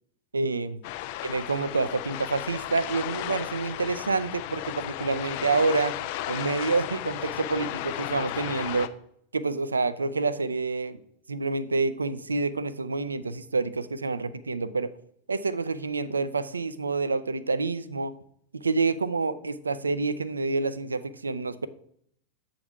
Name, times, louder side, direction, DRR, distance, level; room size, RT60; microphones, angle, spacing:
voice 1, 0.3-0.8 1.2-5.9 6.3-8.9 9.3-11.0 11.3-14.9 15.3-18.1 18.5-21.7, right 3 dB, 75° right, 16 dB, 0.3 m, -28 dB
sound 1, 0.8-8.9, left 14 dB, 45° left, 0.4 m, -34 dB
7.8 x 3.8 x 4.5 m, 0.67 s
figure-of-eight pair, 90°, 0 cm